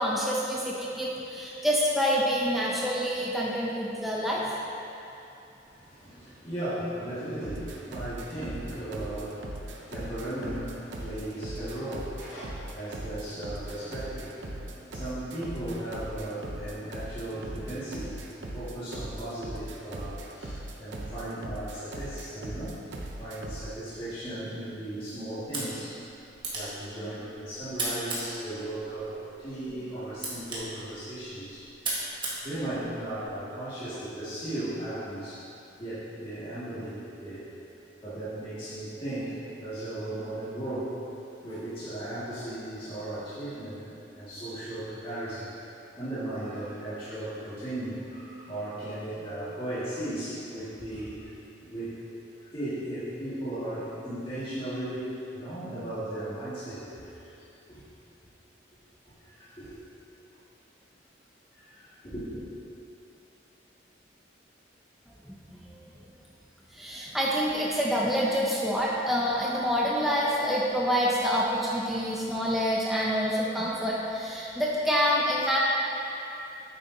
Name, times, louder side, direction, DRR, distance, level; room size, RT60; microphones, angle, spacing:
voice 1, 0.0-4.4 65.3-65.8 66.7-75.6, equal, ahead, -5 dB, 0.6 m, -27 dB
voice 2, 5.6-22.8 23.1-26.0 26.5-31.6 32.4-35.4 35.8-37.4 38.0-41.0 41.4-43.9 44.1-45.5 46.0-51.3 51.6-52.0 52.4-55.1 55.3-57.8 59.0-59.7 61.5-62.5, right 1 dB, 30° left, -14 dB, 1.9 m, -36 dB
sound 1, 7.4-23.7, right 1 dB, 75° right, 0.7 m, -39 dB
sound 2, 25.4-33.4, right 2 dB, 25° right, 1.5 m, -38 dB
9.5 x 7.8 x 2.8 m, 2.8 s
head